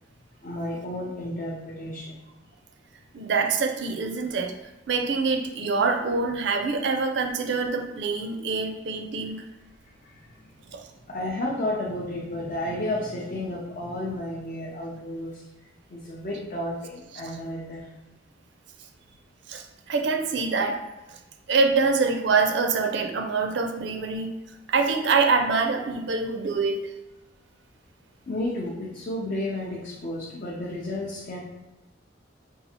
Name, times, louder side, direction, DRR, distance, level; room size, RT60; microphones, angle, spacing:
voice 1, 0.4-2.2 11.1-15.4 15.9-17.9 28.3-31.4, left 1 dB, 40° left, -4 dB, 0.5 m, -32 dB
voice 2, 3.1-4.5 4.9-9.4 10.7-10.9 19.5-20.8 21.1-21.2 21.5-24.3 24.7-26.9, right 4 dB, 60° right, 4 dB, 0.4 m, -25 dB
5.4 x 2.4 x 2.8 m, 1.0 s
head